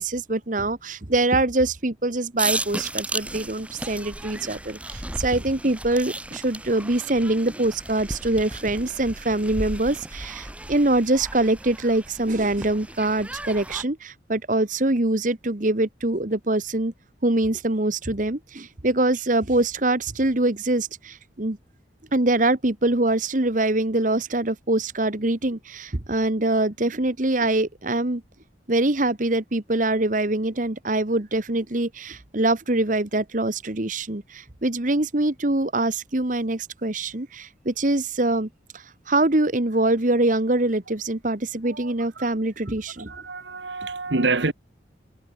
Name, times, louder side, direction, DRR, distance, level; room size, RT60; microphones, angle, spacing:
voice 1, 0.0-16.9 17.2-21.6 22.1-28.2 28.7-43.1, right 2 dB, 45° right, 1.4 m, -24 dB
sound 1, 2.4-13.8, right 1 dB, 5° right, 1.7 m, -34 dB
voice 2, 41.6-42.3 43.1-44.5, right 3 dB, 70° right, 1.6 m, -27 dB
head